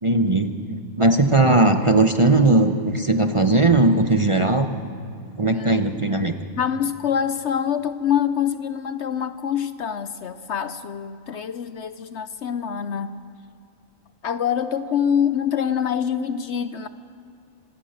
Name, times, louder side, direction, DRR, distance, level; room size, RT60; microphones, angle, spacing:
voice 1, 0.0-4.7 5.4-6.3, right 2 dB, 25° right, 6 dB, 0.8 m, -18 dB
voice 2, 5.5-5.8 6.6-13.1 14.2-16.9, left 8 dB, 60° left, 12 dB, 0.9 m, -25 dB
26.0 x 16.5 x 6.6 m, 2.5 s
omnidirectional pair, 1.4 m